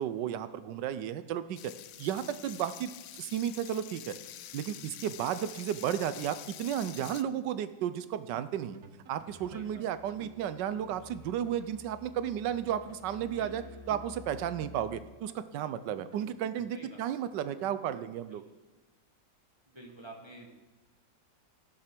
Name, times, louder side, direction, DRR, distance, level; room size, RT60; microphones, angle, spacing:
voice 1, 0.0-1.7 2.0-2.9 3.2-4.1 4.5-8.8 9.1-18.4, right 10 dB, 75° right, 13 dB, 1.2 m, -33 dB
sound 1, 1.6-7.2, left 12 dB, 85° left, 0.7 m, -47 dB
sound 2, 8.0-8.1 8.4-11.8 12.1-12.2 12.5-16.8, right 4 dB, 60° right, 1.3 m, -54 dB
Musical instrument, 9.3-15.0, left 3 dB, 30° left, 2.3 m, -52 dB
voice 2, 9.5-9.8 13.4-13.5 16.7-17.0 18.3-18.4 19.7-20.5, right 2 dB, 15° right, 0 dB, 1.4 m, -49 dB
15.5 x 6.6 x 6.0 m, 1.1 s
omnidirectional pair, 2.0 m